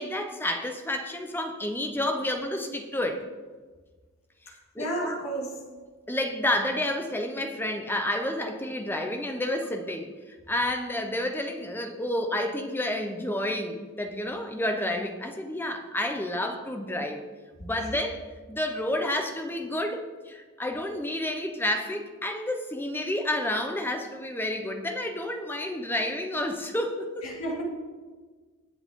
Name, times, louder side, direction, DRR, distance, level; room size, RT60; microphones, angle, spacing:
voice 1, 0.0-3.3 4.7-5.2 6.1-10.1 10.5-17.2 17.6-27.3, left 1 dB, 10° left, 4 dB, 0.9 m, -30 dB
voice 2, 4.8-5.6 27.2-27.6, right 1 dB, 70° left, -2 dB, 2.9 m, -31 dB
20.0 x 7.9 x 3.7 m, 1.4 s
head